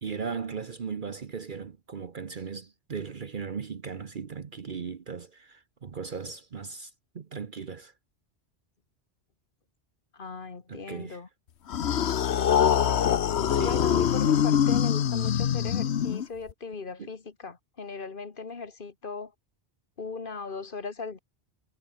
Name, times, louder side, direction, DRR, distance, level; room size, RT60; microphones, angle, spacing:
voice 1, 0.0-7.9 10.7-11.2 13.5-13.8 17.0-17.1, right 6 dB, 50° right, 1.1 m, -37 dB
voice 2, 10.1-11.3 13.6-19.3 20.0-21.2, left 4 dB, 50° left, 1.7 m, -38 dB
sound 1, 11.7-16.5, left 9 dB, 75° left, 1.2 m, -24 dB
omnidirectional pair, 1.1 m